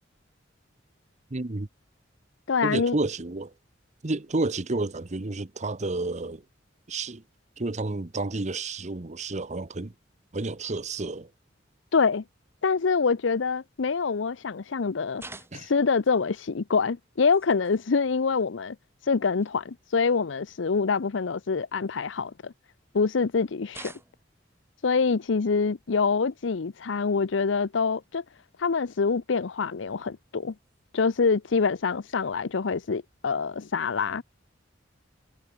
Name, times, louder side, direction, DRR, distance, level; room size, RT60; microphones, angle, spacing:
voice 1, 1.3-1.7 2.6-3.5 4.0-6.4 6.9-7.2 7.6-9.9 10.3-11.3 15.5-15.7, right 2 dB, 40° right, 1.0 m, -30 dB
voice 2, 2.5-3.0 11.9-12.2 12.6-15.2 15.5-18.8 19.1-22.5 22.9-23.9 24.8-28.2 28.6-30.5 30.9-34.2, left 5 dB, 75° left, 0.6 m, -25 dB
sound 1, 15.2-15.9 17.2-17.8 18.8-18.9 19.4-19.5 21.7-22.5 23.7-24.4 26.1-26.4 27.9-28.1 29.2-29.3 30.5-30.8, right 3 dB, 15° right, 1.7 m, -47 dB
head